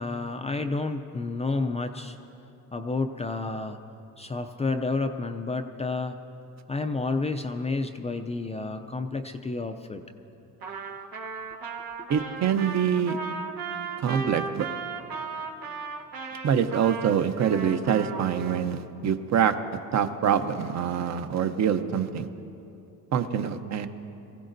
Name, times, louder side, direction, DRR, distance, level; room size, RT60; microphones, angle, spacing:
voice 1, 0.0-2.2 2.7-3.8 4.2-6.2 6.7-10.0, left 3 dB, 20° left, 6 dB, 0.4 m, -30 dB
Trumpet, 10.6-18.6, right 5 dB, 80° right, 1.3 m, -36 dB
voice 2, 12.1-13.3 14.0-14.7 16.4-22.3 23.1-23.9, right 8 dB, 50° right, 9 dB, 0.7 m, -25 dB
24.0 x 16.0 x 2.6 m, 2.9 s
cardioid pair, 155°, 36 cm